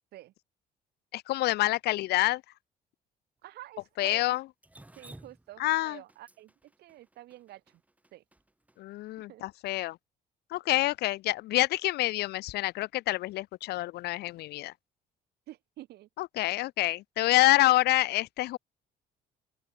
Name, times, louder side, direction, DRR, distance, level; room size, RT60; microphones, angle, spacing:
voice 1, 1.1-2.4 4.0-4.4 5.6-6.0 8.8-10.0 10.5-14.7 16.2-18.6, left 17 dB, 75° left, 0.7 m, -27 dB
voice 2, 3.4-4.4 5.0-7.8 8.1-8.2 9.3-9.4 15.5-16.1, right 15 dB, 75° right, 4.2 m, -48 dB
Drip, 4.6-8.8, right 1 dB, 10° right, 5.3 m, -53 dB
open air
cardioid pair, 110°, 17 cm